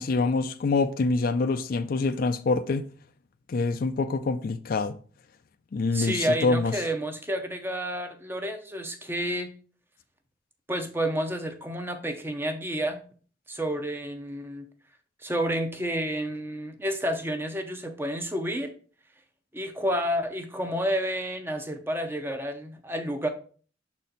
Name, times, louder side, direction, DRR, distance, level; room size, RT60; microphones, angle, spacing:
voice 1, 0.0-2.9 3.5-5.0 5.7-6.7, left 3 dB, 50° left, 0.4 m, -25 dB
voice 2, 5.9-9.5 10.7-13.0 13.5-14.6 15.2-18.7 19.5-23.3, equal, 10° right, 0.6 m, -30 dB
6.3 x 4.2 x 3.9 m
head